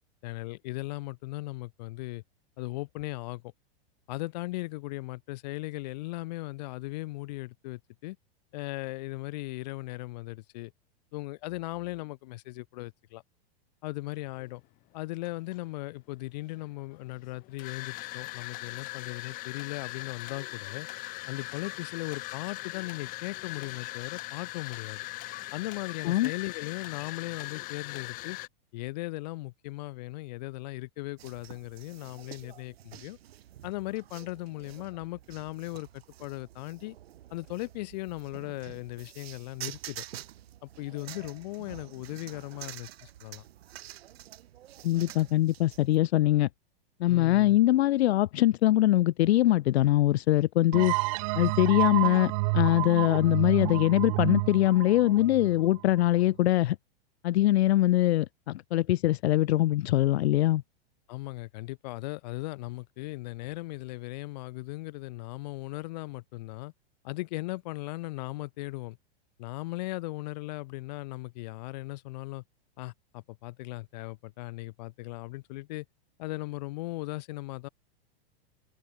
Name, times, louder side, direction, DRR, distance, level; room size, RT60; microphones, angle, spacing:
voice 1, 0.2-2.2 2.6-3.4 4.1-8.2 8.5-10.7 11.1-13.2 13.8-14.6 14.9-20.9 21.3-25.0 25.5-28.4 28.7-33.2 33.6-36.9 37.3-40.0 40.6-43.4 47.1-47.6 61.1-66.7 67.0-69.0 69.4-72.4 72.8-75.8 76.2-77.7, left 20 dB, 40° left, 1.3 m, -38 dB
sound 1, 14.4-14.5 15.2-15.8 16.5-28.5, left 20 dB, 25° left, 2.0 m, -40 dB
sound 2, 31.2-46.0, right 12 dB, 75° right, 2.4 m, -48 dB
voice 2, 44.8-46.5 47.0-51.0 51.4-56.8 57.2-60.6, left 15 dB, 85° left, 0.6 m, -23 dB
sound 3, 50.7-56.2, right 25 dB, 35° right, 0.9 m, -30 dB
open air
supercardioid pair, 170°, 31 cm